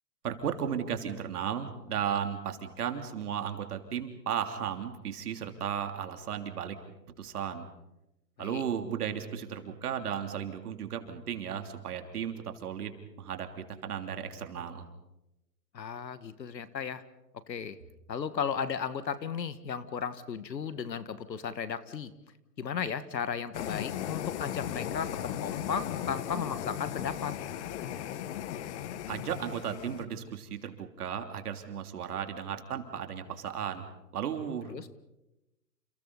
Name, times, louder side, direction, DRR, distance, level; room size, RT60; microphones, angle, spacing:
voice 1, 0.2-6.8 7.2-7.6 8.4-14.9 29.1-33.9 34.1-34.9, right 8 dB, 65° right, 6 dB, 3.3 m, -35 dB
voice 2, 15.7-17.0 17.5-17.8 18.1-22.1 22.6-27.3 34.7-34.9, left 7 dB, 80° left, 13 dB, 1.9 m, -35 dB
sound 1, 23.5-30.0, left 10 dB, 40° left, 1.7 m, -37 dB
29.5 x 29.5 x 4.2 m, 0.94 s
hypercardioid pair, 135°, 50 cm